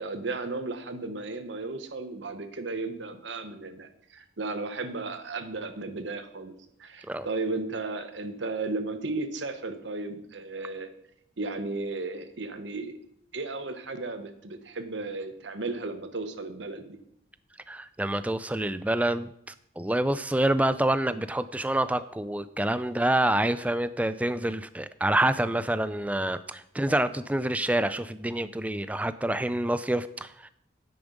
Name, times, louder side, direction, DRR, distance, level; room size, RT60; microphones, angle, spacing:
voice 1, 0.0-6.5 6.8-10.9 11.4-13.0 13.3-17.0, right 3 dB, 70° right, 9 dB, 1.0 m, -34 dB
voice 2, 17.7-30.5, right 1 dB, 5° right, 14 dB, 0.3 m, -27 dB
9.7 x 8.6 x 5.2 m, 0.74 s
head